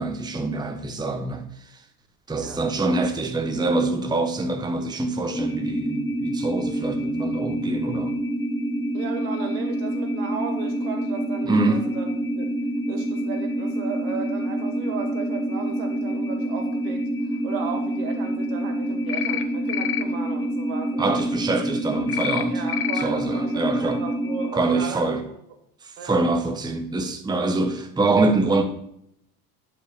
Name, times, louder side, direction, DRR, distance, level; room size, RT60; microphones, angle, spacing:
voice 1, 0.0-1.4 2.3-8.1 11.5-11.8 21.0-22.6 23.0-24.0 24.5-25.2 26.0-28.6, right 3 dB, 10° right, 1.0 m, -25 dB
voice 2, 2.3-2.7 8.9-12.5 12.9-21.2 22.5-25.4 26.0-26.2, right 6 dB, 65° right, 2.2 m, -35 dB
sound 1, 5.3-24.5, right 1 dB, 10° left, 3.5 m, -27 dB
sound 2, 19.1-19.4 19.7-20.0 22.1-22.4 22.7-23.0, left 11 dB, 80° left, 0.8 m, -27 dB
9.9 x 5.2 x 6.4 m
figure-of-eight pair, 65°, 44 cm